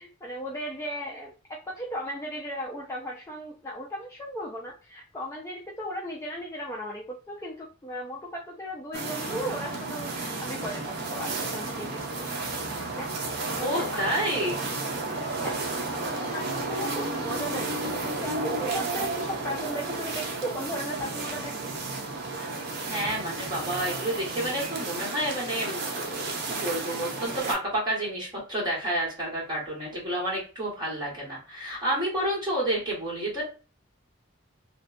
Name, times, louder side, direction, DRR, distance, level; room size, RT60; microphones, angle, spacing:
voice 1, 0.0-12.4 13.0-13.1 13.5-14.2 15.4-15.6 16.0-21.5, equal, 15° left, -2 dB, 0.3 m, -36 dB
sound 1, 8.9-27.5, right 3 dB, 50° right, 0.6 m, -32 dB
voice 2, 13.6-14.6 22.9-33.4, right 1 dB, 20° right, -5 dB, 1.4 m, -30 dB
2.6 x 2.2 x 2.4 m, 0.35 s
head